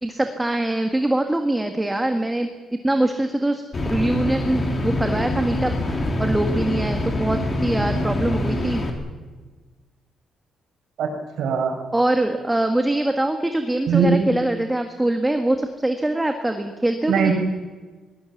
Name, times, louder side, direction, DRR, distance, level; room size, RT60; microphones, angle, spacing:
voice 1, 0.0-2.5 2.8-8.8 11.9-17.3, right 1 dB, 10° right, 5 dB, 1.6 m, -23 dB
sound 1, 3.7-8.9, left 1 dB, 30° left, 3.4 m, -25 dB
voice 2, 11.0-11.8 13.9-14.2 17.1-17.3, right 5 dB, 75° right, 4 dB, 5.3 m, -20 dB
23.0 x 20.0 x 7.2 m, 1.3 s
cardioid pair, 135°, 0 cm